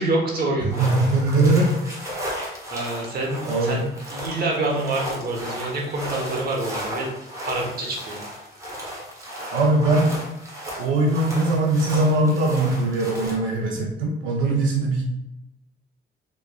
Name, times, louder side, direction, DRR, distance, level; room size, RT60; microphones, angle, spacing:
voice 1, 0.0-0.9 2.7-3.9 4.1-7.1 7.5-8.2 14.4-14.7, right 2 dB, 50° right, -2 dB, 0.9 m, -27 dB
voice 2, 0.6-2.0 3.4-3.8 9.5-10.1 10.8-15.0, right 2 dB, 80° right, -1 dB, 0.6 m, -21 dB
sound 1, 0.7-13.4, equal, 15° right, 0.9 m, -35 dB
3.1 x 2.3 x 2.2 m, 0.90 s
cardioid pair, 90°, 20 cm